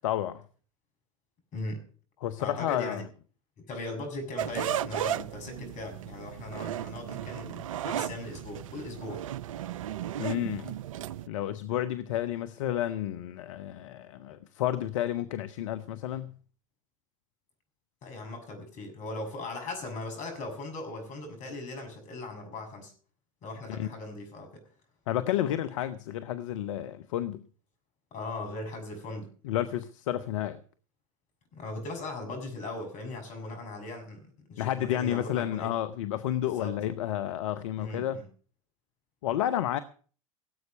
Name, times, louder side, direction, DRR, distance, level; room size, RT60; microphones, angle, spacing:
voice 1, 0.0-0.4 2.2-3.0 10.2-10.8 11.3-16.3 23.7-23.9 25.1-27.4 29.4-30.6 34.6-38.2 39.2-39.8, left 12 dB, 70° left, 0.9 m, -31 dB
voice 2, 1.5-1.8 2.4-3.0 3.6-9.2 18.0-22.9 23.4-24.6 28.1-29.3 31.5-35.7 36.4-36.7 37.8-38.3, left 2 dB, 45° left, 7.0 m, -39 dB
sound 1, 4.4-11.3, right 11 dB, 75° right, 0.6 m, -35 dB
17.5 x 8.1 x 6.6 m
hypercardioid pair, 80°, 17 cm